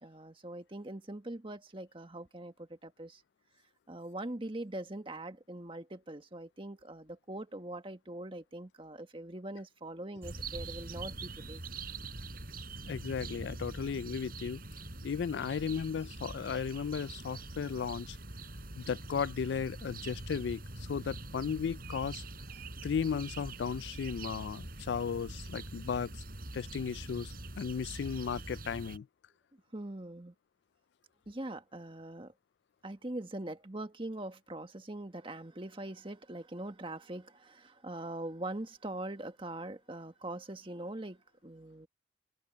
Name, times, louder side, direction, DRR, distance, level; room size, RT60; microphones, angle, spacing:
voice 1, 0.0-3.2 3.9-11.6 29.7-30.3 31.3-32.3 32.8-41.9, right 1 dB, 30° right, 1.5 m, -42 dB
sound 1, 10.2-29.0, right 2 dB, 50° right, 4.8 m, -44 dB
voice 2, 12.9-14.6 15.0-18.2 18.8-22.2 22.8-26.2 26.5-29.1, left 6 dB, 65° left, 0.3 m, -35 dB
head